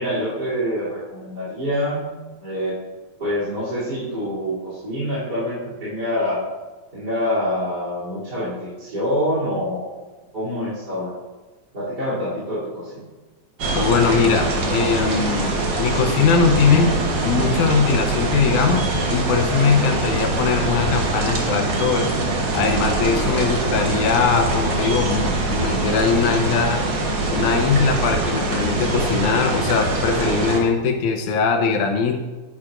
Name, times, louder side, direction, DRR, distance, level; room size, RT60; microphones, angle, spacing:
voice 1, 0.0-2.1 2.4-2.8 3.2-6.4 6.9-9.9 10.3-11.1 11.7-13.1 19.8-20.1 23.3-23.8, equal, 30° right, -11 dB, 3.4 m, -26 dB
sound 1, 13.6-30.6, right 2 dB, 55° right, 1.3 m, -23 dB
voice 2, 13.7-17.0 17.2-22.1 22.5-26.8 27.3-32.2, left 5 dB, 80° left, 4 dB, 2.2 m, -20 dB
10.5 x 9.9 x 2.5 m, 1.2 s
omnidirectional pair, 3.5 m